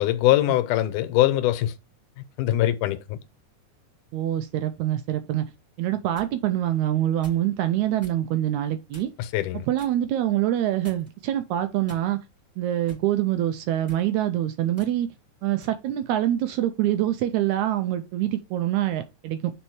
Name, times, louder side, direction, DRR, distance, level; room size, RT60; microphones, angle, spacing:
voice 1, 0.0-1.7 2.4-3.2 9.2-9.7, left 14 dB, 85° left, 2.2 m, -22 dB
voice 2, 4.1-5.5 5.8-9.1 9.7-12.2 12.6-15.1 15.4-19.5, right 12 dB, 80° right, 1.8 m, -25 dB
sound 1, 5.8-6.3 7.2-7.5 8.0-8.2 8.9-9.3 9.8-10.0 10.8-11.2 11.9-12.4 12.9-13.1 13.8-14.1 14.8-14.9 15.6-15.8, left 1 dB, 5° right, 2.0 m, -49 dB
6.1 x 4.3 x 4.7 m
omnidirectional pair, 3.6 m